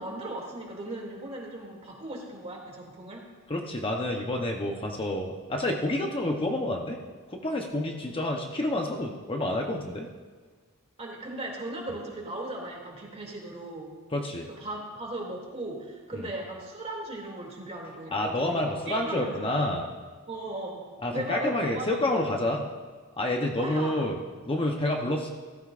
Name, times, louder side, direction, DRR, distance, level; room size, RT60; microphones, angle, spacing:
voice 1, 0.0-3.2 11.0-13.9 14.5-19.6 20.3-20.8 21.1-22.4 23.6-24.0, right 1 dB, 30° right, -1 dB, 2.5 m, -37 dB
voice 2, 3.5-7.0 7.3-10.1 14.1-14.5 16.1-16.2 18.1-19.9 21.0-22.6 23.2-24.2 24.5-25.3, left 1 dB, 25° left, 1 dB, 0.8 m, -28 dB
15.5 x 14.5 x 2.5 m, 1.4 s
head